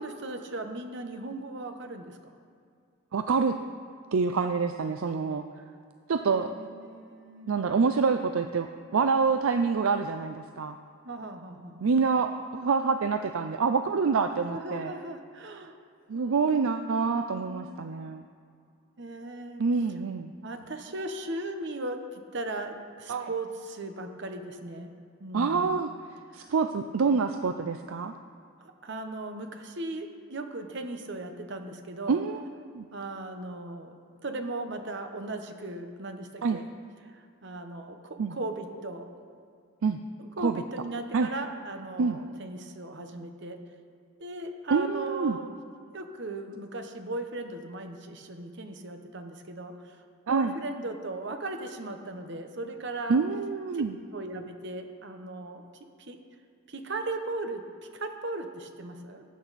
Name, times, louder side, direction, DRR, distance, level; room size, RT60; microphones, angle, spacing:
voice 1, 0.0-2.3 6.3-7.7 11.0-11.8 14.4-15.8 16.1-17.8 19.0-19.6 20.4-24.9 25.2-25.8 26.3-26.5 28.6-32.2 32.9-33.9 34.2-36.7 37.0-39.1 40.2-43.6 44.2-45.5 45.9-53.2 53.7-53.8 54.1-55.6 56.1-56.2 56.7-59.2, right 2 dB, 55° right, 6 dB, 1.0 m, -38 dB
voice 2, 3.1-3.6 4.1-5.4 6.1-6.5 7.5-10.8 11.8-14.9 16.1-18.2 19.6-20.3 23.1-23.3 25.3-25.9 26.3-28.1 32.1-32.4 32.7-32.9 36.4-36.6 38.2-38.4 39.8-40.0 40.4-40.6 41.1-41.3 42.0-42.2 44.7-45.4 50.3-50.5 53.1-53.9, right 5 dB, 70° right, 8 dB, 0.4 m, -26 dB
18.0 x 8.6 x 4.2 m, 2.4 s
head